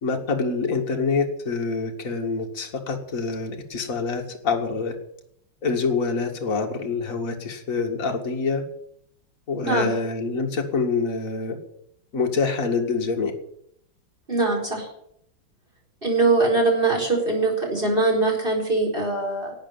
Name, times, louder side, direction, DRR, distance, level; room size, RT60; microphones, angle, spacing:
voice 1, 0.0-4.9 5.6-8.6 9.5-11.6 12.1-13.3, left 4 dB, 40° left, 2 dB, 2.2 m, -26 dB
voice 2, 14.3-14.9 16.0-19.5, right 3 dB, 25° right, 0 dB, 4.9 m, -22 dB
12.5 x 8.7 x 9.6 m, 0.74 s
omnidirectional pair, 2.3 m